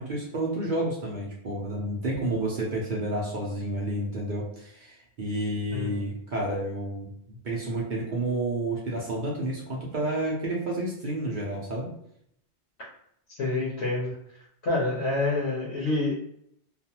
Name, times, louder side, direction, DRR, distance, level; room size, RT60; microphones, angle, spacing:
voice 1, 0.0-11.9, right 1 dB, 55° right, -4 dB, 0.7 m, -30 dB
voice 2, 5.7-6.1 13.3-14.2 14.6-16.1, left 2 dB, 75° left, -7 dB, 1.1 m, -27 dB
2.5 x 2.3 x 2.8 m, 0.72 s
omnidirectional pair, 1.1 m